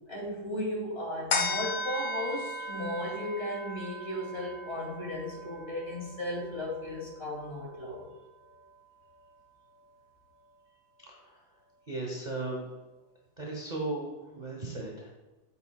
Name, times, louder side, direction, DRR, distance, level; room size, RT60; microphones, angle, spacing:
voice 1, 0.1-8.1, left 1 dB, 30° left, -4 dB, 2.7 m, -35 dB
sound 1, 1.3-8.1 8.5-8.6, left 2 dB, 85° left, 2.2 m, -37 dB
voice 2, 11.0-11.4 11.9-12.6 13.4-15.1, right 2 dB, 30° right, -2 dB, 1.0 m, -36 dB
9.4 x 7.9 x 2.4 m, 1.2 s
omnidirectional pair, 2.3 m